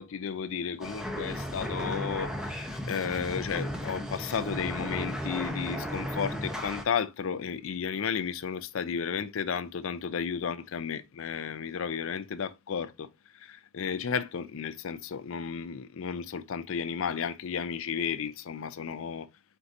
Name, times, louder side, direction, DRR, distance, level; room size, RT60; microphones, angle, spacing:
voice 1, 0.0-13.1 13.4-19.3, left 6 dB, 60° left, 0.4 m, -33 dB
sound 1, 0.8-6.8, equal, 5° right, 0.6 m, -35 dB
4.6 x 3.9 x 2.5 m
head